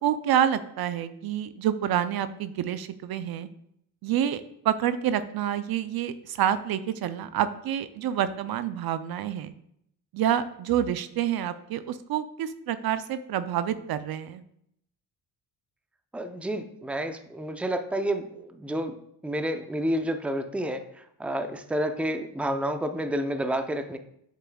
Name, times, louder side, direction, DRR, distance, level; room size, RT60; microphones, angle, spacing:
voice 1, 0.0-3.5 4.0-9.5 10.1-14.4, right 10 dB, 60° right, 12 dB, 0.5 m, -28 dB
voice 2, 16.1-18.9 19.2-20.8 21.2-24.0, right 1 dB, 5° right, 8 dB, 0.6 m, -29 dB
7.4 x 6.7 x 2.3 m, 0.74 s
supercardioid pair, 70°, 42 cm